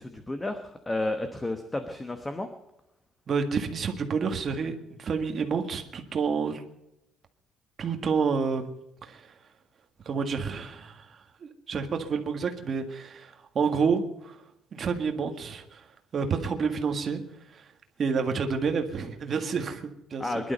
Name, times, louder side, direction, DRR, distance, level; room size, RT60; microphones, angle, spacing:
voice 1, 0.0-2.5 20.2-20.5, left 2 dB, 10° left, 7 dB, 1.1 m, -32 dB
voice 2, 3.3-6.6 7.8-9.3 10.1-11.1 11.4-14.4 14.7-15.8 16.1-17.2 17.5-17.6 18.0-20.4, right 5 dB, 30° right, 5 dB, 1.8 m, -29 dB
22.0 x 12.0 x 5.4 m, 0.86 s
cardioid pair, 175°, 0 cm